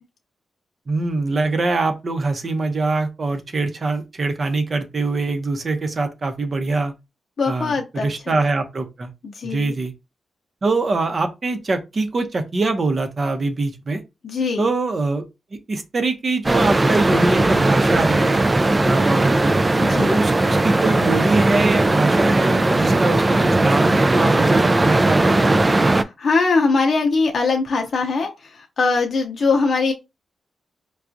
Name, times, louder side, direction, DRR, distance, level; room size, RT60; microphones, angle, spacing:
voice 1, 0.9-6.9 7.5-9.1 9.4-9.9 10.6-14.0 14.6-15.2 15.7-18.4 18.8-19.6 20.1-25.5, right 3 dB, 45° right, 0.8 m, -23 dB
voice 2, 7.4-8.4 9.2-9.7 14.2-14.7 19.8-20.2 25.9-29.9, left 4 dB, 60° left, 0.6 m, -21 dB
sound 1, 16.4-26.0, right 2 dB, 25° right, 0.3 m, -18 dB
4.6 x 2.3 x 2.5 m
cardioid pair, 65°, 0 cm